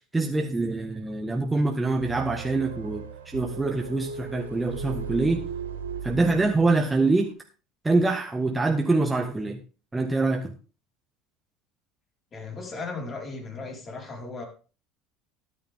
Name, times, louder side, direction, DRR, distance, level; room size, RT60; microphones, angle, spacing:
voice 1, 0.1-5.5 6.0-7.3 7.8-9.6 9.9-10.5, right 3 dB, 15° right, 3 dB, 1.5 m, -25 dB
sound 1, 2.0-7.0, right 5 dB, 85° right, 1.3 m, -37 dB
voice 2, 12.3-14.4, left 3 dB, 35° left, 0 dB, 4.8 m, -36 dB
13.0 x 10.5 x 3.7 m, 0.35 s
hypercardioid pair, 75°, 0 cm